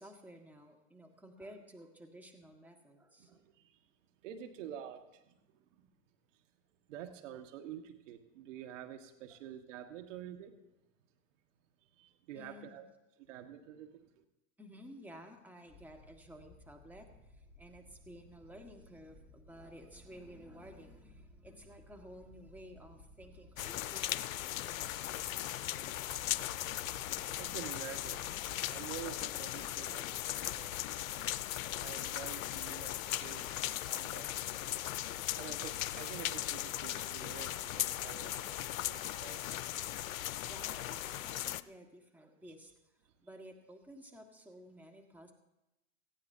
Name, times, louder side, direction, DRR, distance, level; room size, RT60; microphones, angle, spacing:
voice 1, 0.0-3.4 8.9-9.0 9.3-9.4 12.3-12.8 14.6-24.4 34.8-35.1 40.5-42.7 43.2-45.3, equal, 5° right, 3 dB, 1.7 m, -54 dB
voice 2, 4.2-5.0 5.3-5.4 6.9-10.5 12.0-12.9 13.3-14.0 27.4-28.2 28.5-30.7 31.1-31.3 31.8-32.9 33.2-34.3 35.4-39.4 42.4-42.5, right 10 dB, 65° right, 6 dB, 1.7 m, -48 dB
sound 1, 15.7-33.6, left 1 dB, 10° left, 5.7 m, -59 dB
sound 2, 23.6-41.6, left 13 dB, 80° left, 0.6 m, -38 dB
18.5 x 14.5 x 2.8 m, 0.92 s
hypercardioid pair, 110°, 40 cm